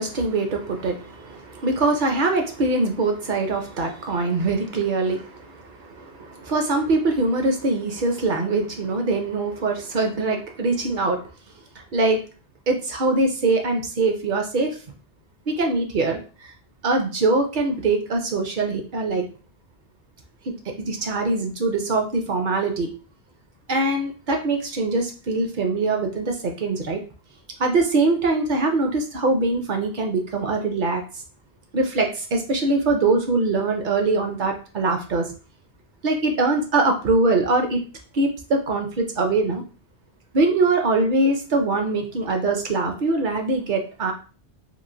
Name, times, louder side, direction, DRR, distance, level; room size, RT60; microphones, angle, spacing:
voice 1, 0.0-5.5 6.0-11.2 11.9-12.2 12.7-14.7 15.5-16.2 16.8-19.2 20.5-22.9 23.7-27.0 27.6-31.0 31.7-35.2 36.0-37.8 38.1-39.6 40.3-44.1, right 3 dB, 55° right, 4 dB, 0.7 m, -23 dB
3.0 x 2.4 x 2.6 m, 0.36 s
omnidirectional pair, 1.1 m